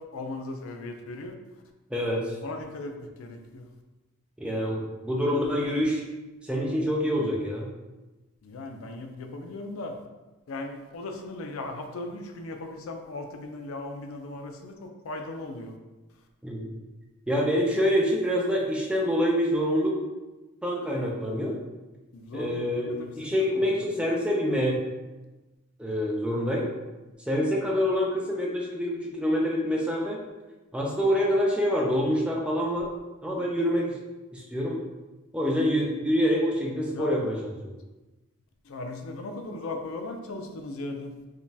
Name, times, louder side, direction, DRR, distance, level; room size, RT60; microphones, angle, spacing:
voice 1, 0.0-1.3 2.4-3.7 8.4-10.0 10.5-14.7 15.0-15.8 22.1-23.1 23.5-23.9 33.4-33.5 36.9-37.2 38.6-41.2, left 2 dB, 75° left, 5 dB, 0.4 m, -37 dB
voice 2, 1.9-2.4 4.4-6.0 6.4-7.7 16.4-16.7 17.3-20.0 20.6-21.6 22.3-24.8 25.8-26.7 27.3-30.2 30.7-32.9 33.2-34.0 34.3-34.8 35.3-37.4, equal, 5° right, -2 dB, 0.4 m, -26 dB
4.9 x 2.2 x 2.7 m, 1.1 s
head